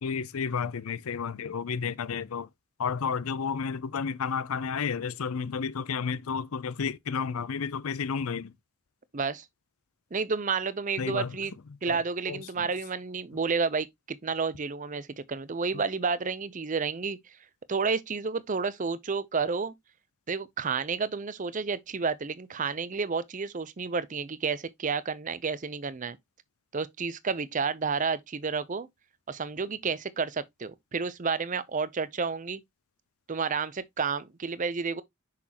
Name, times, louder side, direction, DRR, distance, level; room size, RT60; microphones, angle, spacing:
voice 1, 0.0-2.5 2.8-8.5 11.0-11.3 11.9-12.0 12.3-12.7, left 6 dB, 70° left, 0.5 m, -31 dB
voice 2, 9.1-9.5 10.1-11.5 11.8-17.2 17.7-19.7 20.3-26.2 26.7-28.9 29.3-32.6 33.3-35.0, right 5 dB, 35° right, 0.5 m, -30 dB
6.2 x 5.8 x 2.9 m
head